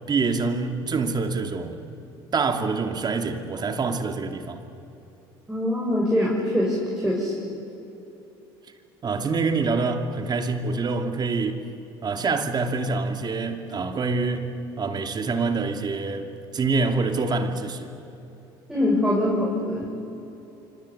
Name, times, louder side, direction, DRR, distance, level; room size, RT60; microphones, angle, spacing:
voice 1, 0.1-1.8 2.3-4.6 9.0-11.7 12.0-16.3 16.5-17.9 19.8-19.9, right 4 dB, 35° right, 6 dB, 2.7 m, -26 dB
voice 2, 5.5-6.8 7.0-7.3 18.7-19.9, left 1 dB, 5° right, -4 dB, 6.7 m, -23 dB
26.0 x 25.0 x 8.7 m, 2.9 s
hypercardioid pair, 75°, 12 cm